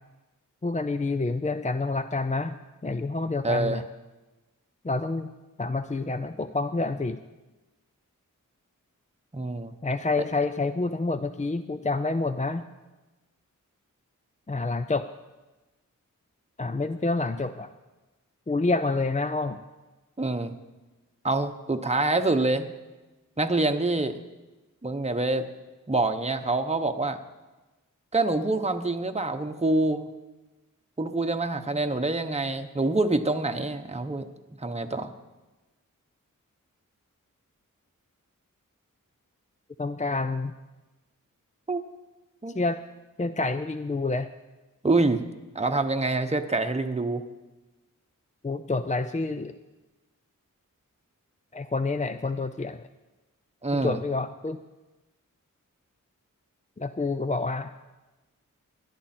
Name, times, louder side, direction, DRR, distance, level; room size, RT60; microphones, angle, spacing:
voice 1, 0.6-2.5 2.8-3.8 4.8-5.3 5.6-7.2 9.8-12.6 14.5-15.1 16.6-17.7 18.5-19.6 39.8-40.5 42.5-42.8 43.2-44.3 48.4-49.5 51.5-52.8 53.7-54.6 56.8-57.7, left 3 dB, 20° left, 10 dB, 0.5 m, -28 dB
voice 2, 3.4-3.8 9.3-9.7 20.2-20.5 21.2-22.7 23.4-24.2 24.8-25.5 25.9-27.2 28.1-30.1 31.0-34.2 34.6-35.1 41.7-41.8 42.4-42.5 44.8-45.2 45.5-47.2 53.6-54.0, right 2 dB, 20° right, 6 dB, 1.0 m, -26 dB
18.0 x 11.0 x 4.4 m, 1.1 s
cardioid pair, 50°, 33 cm